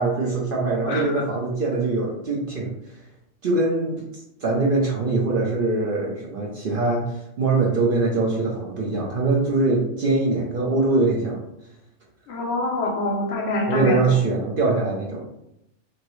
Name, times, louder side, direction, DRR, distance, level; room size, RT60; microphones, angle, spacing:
voice 1, 0.0-3.0 3.4-11.4 13.7-15.2, right 3 dB, 55° right, -3 dB, 0.6 m, -23 dB
voice 2, 0.9-1.2 12.3-14.1, left 2 dB, 65° left, 1 dB, 0.8 m, -25 dB
2.9 x 2.7 x 3.0 m, 0.82 s
omnidirectional pair, 1.3 m